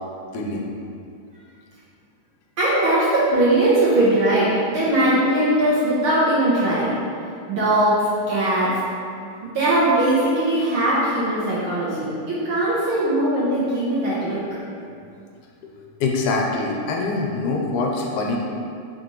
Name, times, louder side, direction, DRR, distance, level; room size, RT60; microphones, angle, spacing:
voice 1, 0.3-0.7 15.6-15.7 16.0-18.4, left 3 dB, 80° left, 0 dB, 2.2 m, -24 dB
voice 2, 2.6-7.0 7.5-8.7 9.4-14.4, right 1 dB, 60° right, -8 dB, 1.6 m, -20 dB
9.2 x 5.5 x 3.1 m, 2.4 s
omnidirectional pair, 3.6 m